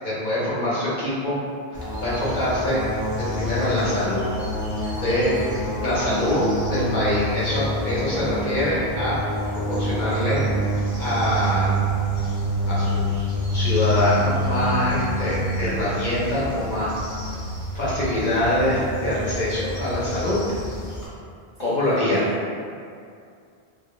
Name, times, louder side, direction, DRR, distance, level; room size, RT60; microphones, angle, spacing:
voice 1, 0.0-1.4 2.0-2.8 3.3-4.2 5.0-5.3 5.8-9.2 9.5-10.4 11.0-11.7 12.6-13.2 13.5-16.9 17.7-20.4 21.6-22.2, left 1 dB, 55° left, -8 dB, 0.7 m, -24 dB
sound 1, 1.7-21.1, equal, 30° left, 0.4 m, -27 dB
voice 2, 4.8-5.1 21.6-22.6, right 1 dB, 60° right, -8 dB, 0.7 m, -40 dB
2.2 x 2.0 x 2.9 m, 2.3 s
omnidirectional pair, 1.1 m